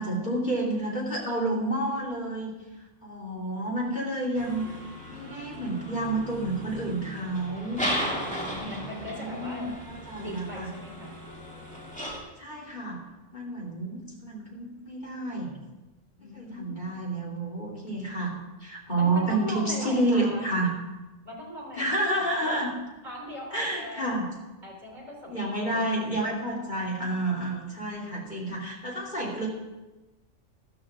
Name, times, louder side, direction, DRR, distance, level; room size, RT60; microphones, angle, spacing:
voice 1, 0.0-2.5 3.0-4.6 5.1-7.8 8.4-10.7 12.4-13.0 13.3-15.6 16.3-18.3 18.6-20.7 21.7-22.7 23.5-24.3 25.3-29.5, right 2 dB, 35° left, -3 dB, 2.9 m, -30 dB
sound 1, 4.3-12.2, equal, 5° left, 2.7 m, -36 dB
voice 2, 8.2-9.7 10.2-11.2 16.2-16.9 19.0-20.6 21.2-22.7 23.0-24.1 24.6-25.8, equal, 35° right, -2 dB, 3.9 m, -40 dB
14.0 x 13.5 x 3.6 m, 1.1 s
omnidirectional pair, 1.4 m